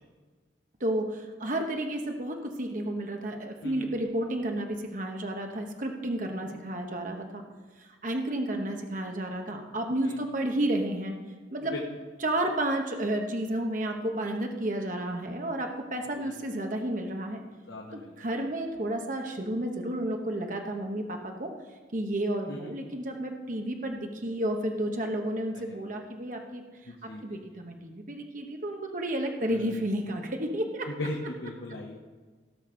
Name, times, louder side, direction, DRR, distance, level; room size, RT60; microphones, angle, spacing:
voice 1, 0.8-7.4 7.8-11.1 11.5-11.7 12.2-17.4 17.9-21.5 21.9-26.6 27.2-30.9, right 1 dB, 45° right, 3 dB, 1.0 m, -31 dB
voice 2, 17.7-18.1 22.5-22.7 26.9-27.4 29.5-29.9 30.8-32.0, left 1 dB, 85° left, -1 dB, 1.2 m, -38 dB
17.0 x 6.0 x 5.2 m, 1.4 s
head